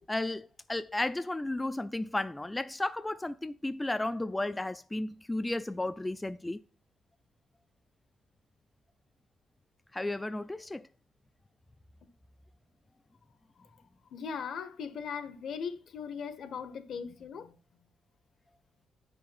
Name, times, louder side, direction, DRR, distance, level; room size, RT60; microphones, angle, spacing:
voice 1, 0.1-6.6 9.9-10.9, left 2 dB, 15° left, 0.3 m, -33 dB
voice 2, 14.1-17.5, left 6 dB, 65° left, 1.2 m, -39 dB
9.3 x 6.1 x 4.2 m
cardioid pair, 90°, 0 cm